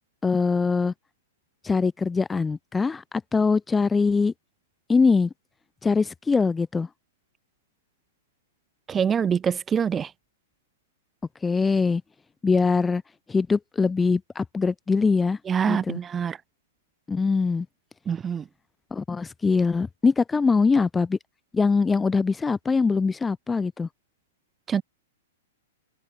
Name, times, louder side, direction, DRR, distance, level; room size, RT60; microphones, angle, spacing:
voice 1, 0.2-0.9 1.6-4.3 4.9-5.3 5.8-6.9 11.4-12.0 12.4-13.0 13.3-15.4 15.7-16.0 17.1-17.7 18.9-21.2 21.5-23.9, left 4 dB, 5° left, 1.1 m, -22 dB
voice 2, 8.9-10.1 15.5-16.4 18.0-18.5 24.7-24.8, right 7 dB, 10° right, 1.4 m, -25 dB
hypercardioid pair, 180°, 0 cm